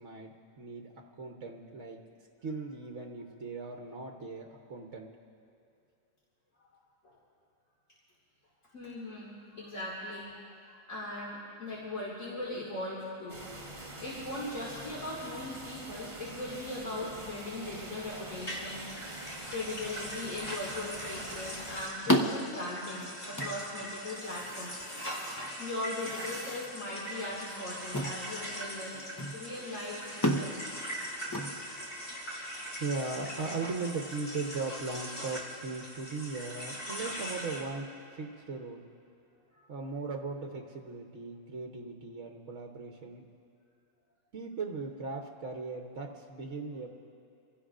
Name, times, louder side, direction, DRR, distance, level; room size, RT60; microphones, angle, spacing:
voice 1, 0.0-2.0 2.4-5.1 13.8-14.0 17.1-17.2 32.8-38.8 39.7-43.2 44.3-46.9, right 3 dB, 65° right, 1 dB, 1.4 m, -38 dB
voice 2, 8.7-13.5 14.0-19.2 19.5-24.9 25.2-29.0 29.3-30.6 39.5-39.7, left 2 dB, 70° left, -6 dB, 2.6 m, -39 dB
sound 1, 13.3-21.9, right 2 dB, 45° right, 2.3 m, -45 dB
sound 2, 18.4-37.6, equal, 40° left, 3.2 m, -41 dB
sound 3, 21.3-32.1, equal, 15° left, 0.7 m, -36 dB
27.0 x 16.0 x 2.5 m, 2.5 s
omnidirectional pair, 1.4 m